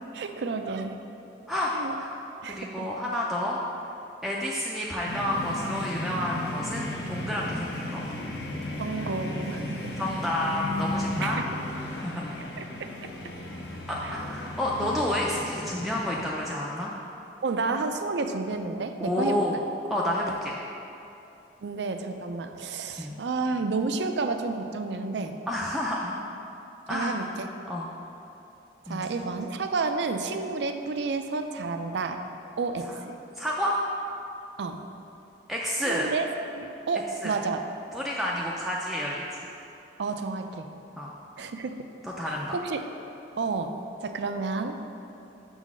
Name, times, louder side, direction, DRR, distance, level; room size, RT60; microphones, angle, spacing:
voice 1, 0.1-1.0 1.7-2.0 2.4-2.9 8.8-10.0 11.2-11.5 12.6-12.9 14.0-14.2 14.8-15.1 17.4-19.4 21.6-25.3 26.9-27.5 28.9-32.2 32.6-33.2 34.6-34.8 35.9-36.3 36.5-37.6 40.0-40.7 41.4-41.7 42.5-42.8 43.4-43.7 44.0-44.8, right 4 dB, 70° right, 7 dB, 0.4 m, -30 dB
voice 2, 1.5-3.6 4.2-8.0 10.0-11.4 11.9-12.4 13.9-16.9 19.0-19.6 19.9-20.5 23.0-23.2 25.5-26.2 26.9-27.2 27.7-27.9 28.9-29.1 33.4-33.8 35.5-36.1 37.2-37.3 37.9-39.3 41.0-41.1 42.0-42.6, left 1 dB, ahead, -4 dB, 0.4 m, -30 dB
sound 1, 5.0-16.2, left 1 dB, 70° left, 0.9 m, -35 dB
6.4 x 3.9 x 6.1 m, 2.8 s
head